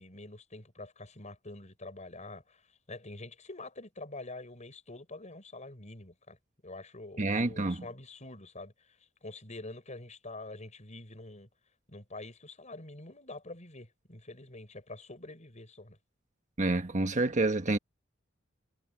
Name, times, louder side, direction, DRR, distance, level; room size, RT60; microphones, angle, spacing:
voice 1, 0.0-6.4 6.6-11.5 11.9-16.0, left 2 dB, 40° left, 6.3 m, -46 dB
voice 2, 7.2-7.8 16.6-17.8, right 2 dB, 40° right, 1.3 m, -28 dB
head